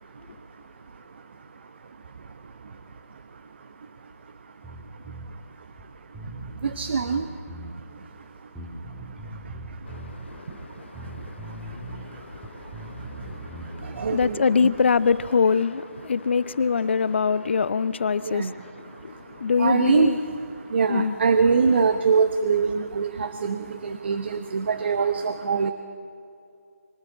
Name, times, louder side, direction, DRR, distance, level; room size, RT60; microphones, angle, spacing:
voice 1, 0.0-14.7 18.2-20.1 20.6-25.7, right 5 dB, 45° right, 1.0 m, -28 dB
Bass guitar, 4.6-5.3 5.8-5.9 6.1-7.8 8.6-10.2 10.9-12.1 12.4-14.2, right 1 dB, 5° right, 1.7 m, -39 dB
voice 2, 9.9-20.2 20.6-21.1, left 5 dB, 50° left, 0.6 m, -25 dB
24.5 x 14.0 x 8.6 m
figure-of-eight pair, 165°, 8 cm